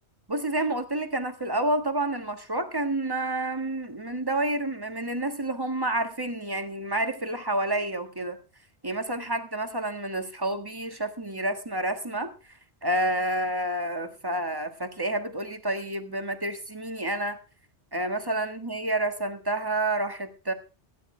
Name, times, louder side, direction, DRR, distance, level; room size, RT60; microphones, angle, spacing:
voice 1, 0.3-8.4 8.8-17.4 17.9-20.5, right 1 dB, 20° right, 8 dB, 1.6 m, -29 dB
16.5 x 10.5 x 3.3 m, 0.33 s
omnidirectional pair, 1.1 m